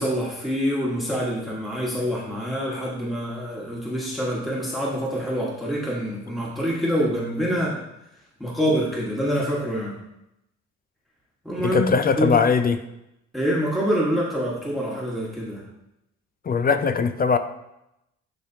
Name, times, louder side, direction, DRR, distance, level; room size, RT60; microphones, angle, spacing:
voice 1, 0.0-7.8 8.4-10.0 11.4-11.8 12.2-12.4 13.3-15.6, equal, ahead, -5 dB, 1.4 m, -26 dB
voice 2, 11.6-12.8 16.4-17.4, left 5 dB, 30° left, 10 dB, 0.5 m, -20 dB
10.0 x 3.4 x 2.8 m, 0.85 s
cardioid pair, 90°, 30 cm